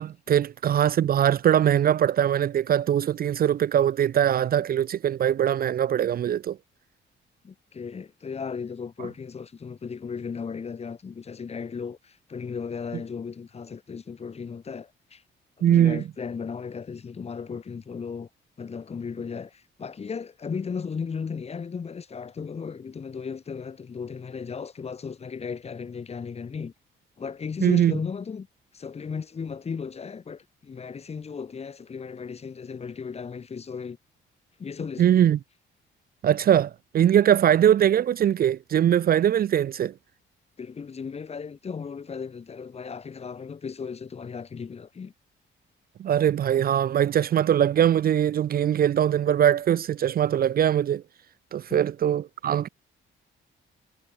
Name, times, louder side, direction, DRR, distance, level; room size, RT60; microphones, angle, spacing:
voice 1, 0.0-6.6 15.6-16.0 27.6-27.9 35.0-35.4 36.2-39.9 46.0-51.0 51.5-52.7, right 10 dB, 45° right, 0.6 m, -21 dB
voice 2, 7.4-15.2 15.6-18.3 18.6-26.7 27.2-28.5 28.7-34.0 34.6-35.3 40.6-45.1 51.7-51.8, left 6 dB, 30° left, 1.9 m, -36 dB
cardioid pair, 150°, 21 cm